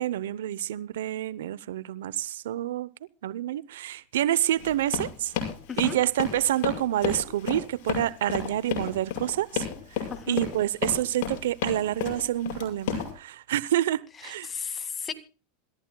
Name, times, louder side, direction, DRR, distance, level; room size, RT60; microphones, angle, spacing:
voice 1, 0.0-2.9 3.2-5.3 5.8-9.6 10.3-14.5, right 13 dB, 80° right, 0.7 m, -28 dB
Run, 4.6-13.1, left 8 dB, 65° left, 6.2 m, -31 dB
voice 2, 10.1-10.4 14.2-15.1, left 6 dB, 25° left, 2.1 m, -35 dB
27.0 x 14.0 x 2.3 m
hypercardioid pair, 105°, 0 cm